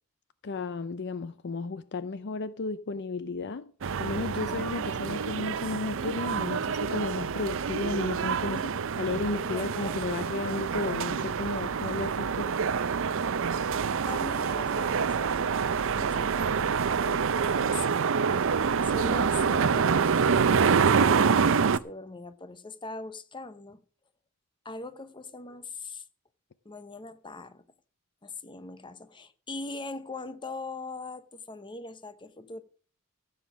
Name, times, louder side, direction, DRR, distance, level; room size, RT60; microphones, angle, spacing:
voice 1, 0.4-3.7 4.0-8.6 9.0-12.5, left 3 dB, 50° left, 0.5 m, -33 dB
sound 1, 3.8-21.8, right 6 dB, 60° right, 0.5 m, -27 dB
voice 2, 8.5-8.8 9.5-10.0 14.1-15.5 15.9-16.7 17.0-18.0 18.3-18.6 18.8-23.8 24.6-26.0 26.6-27.6 28.2-32.6, left 3 dB, 20° left, 0.8 m, -41 dB
14.5 x 7.2 x 6.1 m
head